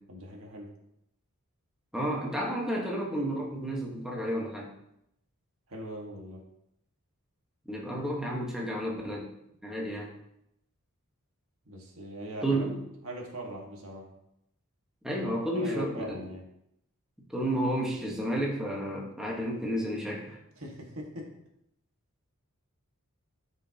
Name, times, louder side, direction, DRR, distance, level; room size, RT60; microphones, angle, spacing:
voice 1, 0.1-0.7 5.7-6.4 11.7-12.6 13.0-14.1 15.2-16.4 20.6-21.3, right 1 dB, 65° right, 0 dB, 1.8 m, -41 dB
voice 2, 1.9-4.7 7.7-9.3 9.6-10.1 12.4-12.8 15.0-16.2 17.3-20.4, right 1 dB, 5° right, -3 dB, 1.4 m, -31 dB
13.0 x 5.6 x 2.9 m, 0.80 s
head